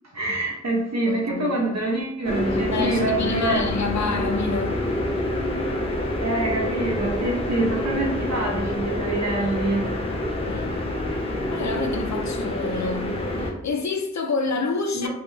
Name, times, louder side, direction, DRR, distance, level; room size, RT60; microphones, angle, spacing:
voice 1, 0.1-3.7 6.2-9.9 14.9-15.1, right 2 dB, 60° right, 0.8 m, -25 dB
voice 2, 1.1-1.6 2.7-4.9 10.5-10.8 11.5-13.1 13.4-15.1, left 4 dB, 65° left, 0.4 m, -28 dB
sound 1, 2.2-13.5, left 1 dB, 20° left, 0.9 m, -27 dB
3.3 x 3.1 x 3.1 m
wide cardioid pair, 65°, 30 cm